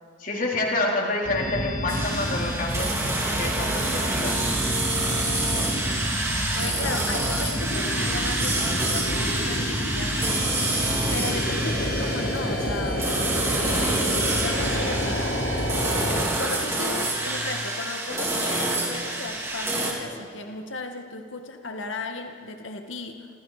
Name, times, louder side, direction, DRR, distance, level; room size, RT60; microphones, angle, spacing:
voice 1, 0.2-3.0 3.3-4.4, left 2 dB, 45° left, -1 dB, 4.2 m, -28 dB
sound 1, 1.2-16.2, equal, 65° left, 5.7 m, -29 dB
sound 2, 1.9-19.9, right 2 dB, 15° right, 3.8 m, -27 dB
voice 2, 6.5-10.4 11.1-13.1 13.5-15.3 16.4-23.3, left 3 dB, 85° left, 4 dB, 2.0 m, -35 dB
28.5 x 26.5 x 5.2 m, 2.4 s
head